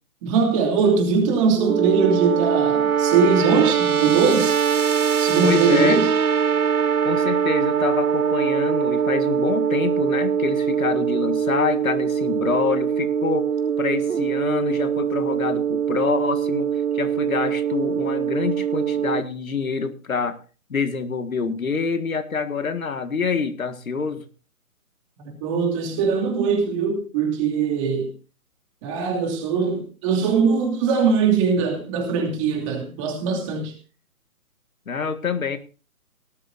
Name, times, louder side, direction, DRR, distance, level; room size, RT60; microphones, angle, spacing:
voice 1, 0.2-4.6 5.2-6.1 25.2-28.1 28.8-33.7, right 5 dB, 20° right, 2.8 m, -21 dB
sound 1, 1.5-19.2, right 7 dB, 80° right, 0.9 m, -22 dB
voice 2, 5.4-6.0 7.0-13.5 13.8-16.7 16.9-20.4 20.7-24.3 34.9-35.6, left 5 dB, 70° left, 1.8 m, -26 dB
18.5 x 12.5 x 2.6 m
figure-of-eight pair, 150°, 43 cm